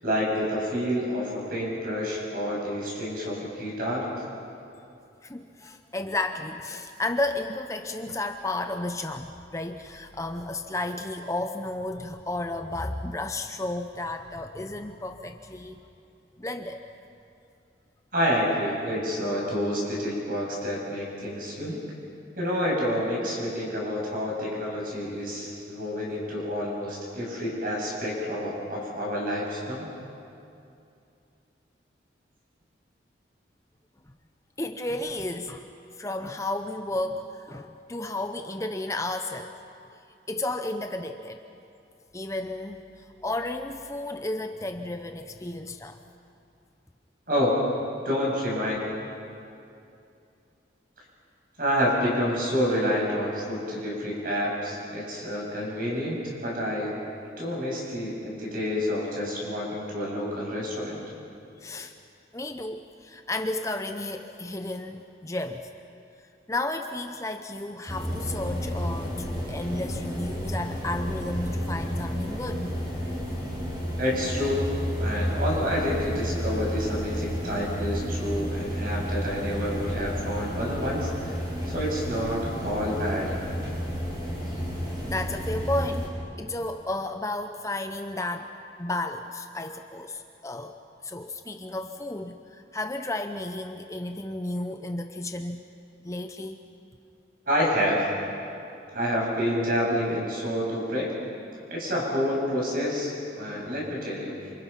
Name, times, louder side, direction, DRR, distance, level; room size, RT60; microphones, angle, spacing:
voice 1, 0.0-4.1 18.1-21.8 22.4-29.9 47.3-47.6 48.0-48.8 51.6-56.9 57.4-61.0 74.0-74.7 75.0-83.4 97.5-98.0 98.9-101.1 101.7-104.3, equal, 50° right, -3 dB, 7.8 m, -28 dB
voice 2, 5.2-15.8 16.4-16.8 34.6-35.7 36.0-39.5 40.3-41.4 42.1-46.0 61.6-61.9 62.3-65.7 66.5-72.7 85.0-88.5 88.8-90.8 91.0-95.6 96.0-96.6, left 2 dB, 15° left, 6 dB, 0.7 m, -33 dB
sound 1, 67.9-86.1, equal, 20° right, 5.8 m, -31 dB
27.5 x 27.5 x 5.9 m, 2.6 s
head